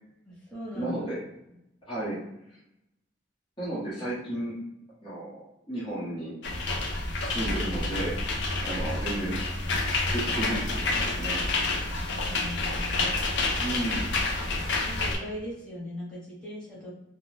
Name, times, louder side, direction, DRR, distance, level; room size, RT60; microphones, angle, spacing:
voice 1, 0.2-1.0 11.7-13.0 14.8-16.9, equal, 5° left, -8 dB, 1.1 m, -39 dB
voice 2, 0.8-1.2 1.9-2.2 3.6-4.5 5.0-6.4 7.2-8.1 8.6-9.4 10.1-11.4 13.6-14.0, right 1 dB, 25° left, -9 dB, 0.8 m, -33 dB
sound 1, 6.4-15.2, left 2 dB, 70° left, 0.5 m, -29 dB
2.4 x 2.1 x 3.1 m, 0.85 s
head